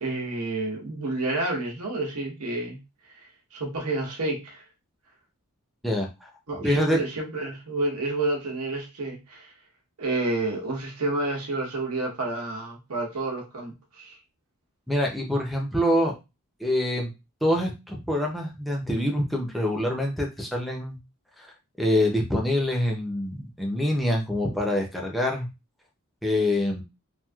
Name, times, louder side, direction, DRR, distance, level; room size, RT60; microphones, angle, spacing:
voice 1, 0.0-2.8 3.2-4.6 6.5-9.5 10.0-14.2, right 2 dB, 85° right, 0 dB, 1.0 m, -29 dB
voice 2, 6.6-7.0 14.9-16.1 16.6-17.1 17.4-21.0 21.8-25.5 26.2-26.8, left 1 dB, ahead, -1 dB, 0.5 m, -25 dB
3.0 x 2.6 x 2.3 m, 0.26 s
head